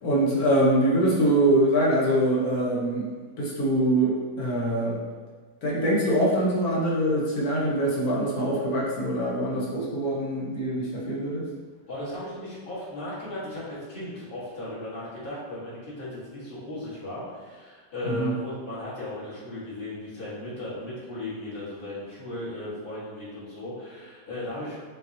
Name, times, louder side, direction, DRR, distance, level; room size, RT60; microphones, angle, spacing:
voice 1, 0.0-3.1 3.4-5.0 5.6-11.4 18.0-18.3, right 1 dB, 60° left, -5 dB, 1.3 m, -24 dB
voice 2, 11.9-24.8, left 1 dB, 35° left, -9 dB, 1.4 m, -36 dB
6.0 x 2.9 x 2.7 m, 1.5 s
omnidirectional pair, 1.9 m